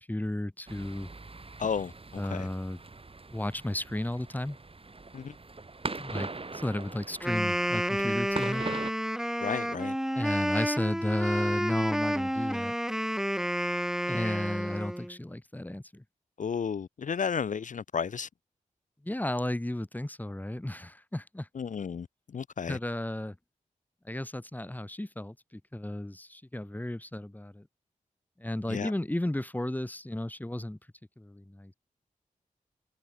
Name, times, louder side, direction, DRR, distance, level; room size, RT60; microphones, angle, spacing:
voice 1, 0.1-1.1 2.2-2.8 3.3-4.6 6.0-6.3 6.5-8.6 10.2-12.7 14.1-16.0 19.1-21.5 22.7-23.4 24.1-27.6 28.4-30.8 31.2-31.7, left 1 dB, 10° left, 1.8 m, -33 dB
sound 1, 0.7-8.9, right 3 dB, 40° right, 4.8 m, -41 dB
voice 2, 1.6-2.5 5.1-5.3 9.4-10.0 16.4-18.3 21.5-22.1 22.3-22.8 28.7-28.9, left 6 dB, 65° left, 0.7 m, -33 dB
Wind instrument woodwind instrument, 7.1-15.2, equal, 5° right, 2.4 m, -30 dB
cardioid pair, 45°, 14 cm